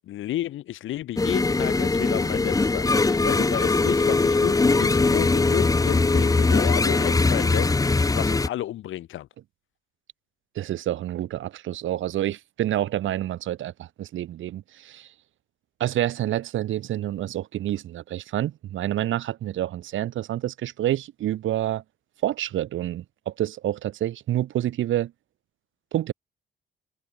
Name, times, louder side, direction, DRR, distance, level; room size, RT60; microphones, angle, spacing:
voice 1, 0.0-9.3, left 13 dB, 80° left, 6.4 m, -32 dB
sound 1, 1.2-8.5, left 3 dB, 15° left, 0.9 m, -21 dB
voice 2, 10.6-15.1 15.8-21.8 22.2-25.1 25.9-26.1, right 13 dB, 80° right, 3.7 m, -28 dB
cardioid pair, 90°, 20 cm